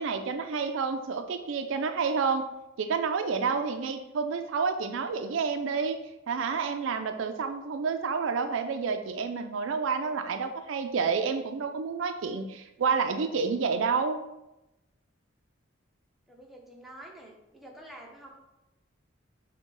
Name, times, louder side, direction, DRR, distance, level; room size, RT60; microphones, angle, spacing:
voice 1, 0.0-2.5 2.8-6.0 6.3-14.3, right 5 dB, 70° right, 7 dB, 0.4 m, -29 dB
voice 2, 16.3-18.4, right 1 dB, ahead, -1 dB, 0.6 m, -48 dB
6.1 x 2.2 x 3.8 m, 0.93 s
head